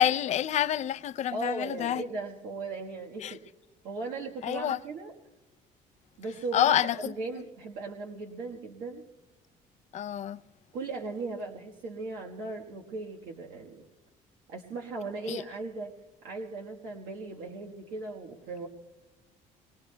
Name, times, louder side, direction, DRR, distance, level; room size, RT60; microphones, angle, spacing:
voice 1, 0.0-2.0 3.2-3.3 4.4-4.8 6.5-7.1 9.9-10.4 15.3-15.4, left 11 dB, 55° left, 0.5 m, -27 dB
voice 2, 1.3-3.4 3.8-5.2 6.2-9.0 10.7-13.8 14.5-15.9 16.2-18.7, right 3 dB, 90° right, 1.4 m, -37 dB
25.5 x 22.0 x 2.2 m
cardioid pair, 115°, 14 cm